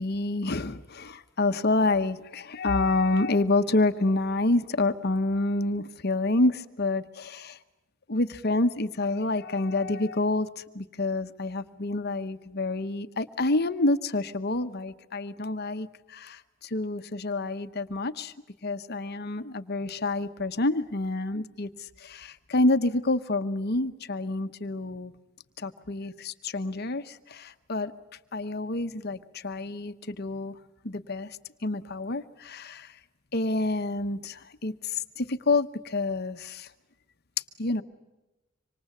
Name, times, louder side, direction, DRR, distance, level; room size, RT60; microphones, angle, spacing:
voice 1, 0.0-7.6 8.1-18.3 18.6-25.1 25.6-27.9 28.3-30.6 30.8-33.0 33.3-36.7 37.6-37.8, left 2 dB, 55° left, 10 dB, 1.0 m, -28 dB
26.0 x 26.0 x 8.4 m, 1.0 s
head